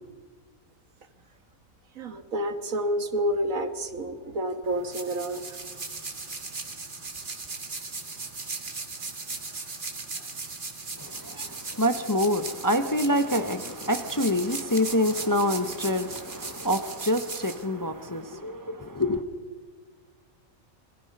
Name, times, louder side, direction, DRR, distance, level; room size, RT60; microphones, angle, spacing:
voice 1, 2.0-5.6, right 1 dB, 70° right, 9 dB, 1.8 m, -29 dB
sound 1, 4.6-18.2, right 3 dB, 35° right, 1.8 m, -38 dB
voice 2, 11.0-19.2, left 1 dB, 20° left, 9 dB, 0.7 m, -26 dB
26.5 x 21.5 x 5.4 m, 1.4 s
omnidirectional pair, 1.5 m